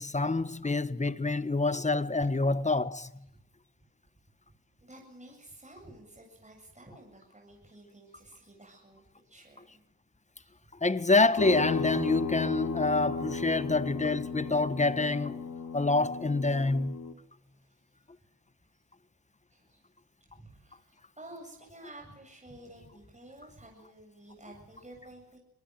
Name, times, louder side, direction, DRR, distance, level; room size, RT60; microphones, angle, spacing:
voice 1, 0.0-3.1 10.8-15.4 15.7-17.0, left 3 dB, 20° left, 1.3 m, -27 dB
voice 2, 4.8-9.8 10.4-10.5 17.4-18.3 18.7-18.8 19.5-19.8 20.3-25.4, right 1 dB, 20° right, 7.7 m, -52 dB
sound 1, 11.4-17.1, left 4 dB, 60° left, 2.7 m, -35 dB
24.0 x 19.5 x 7.9 m
cardioid pair, 65°, 36 cm